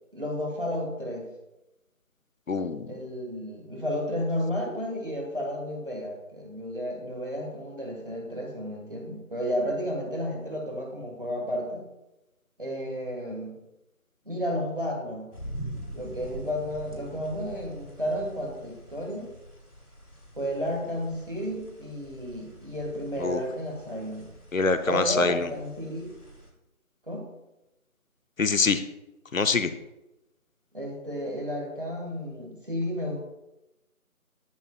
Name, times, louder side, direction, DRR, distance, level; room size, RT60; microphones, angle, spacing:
voice 1, 0.1-1.3 2.8-11.8 12.6-13.6 14.3-15.3 16.0-19.3 20.4-24.3 24.9-26.1 27.1-27.3 30.7-33.2, equal, 35° right, 1 dB, 1.8 m, -32 dB
voice 2, 2.5-2.9 23.2-23.4 24.5-25.5 28.4-28.8 29.3-29.7, left 4 dB, 65° left, 10 dB, 0.7 m, -24 dB
sound 1, 15.3-26.5, right 1 dB, 85° left, 2.5 m, -44 dB
12.0 x 8.4 x 2.4 m, 0.96 s
figure-of-eight pair, 175°, 44 cm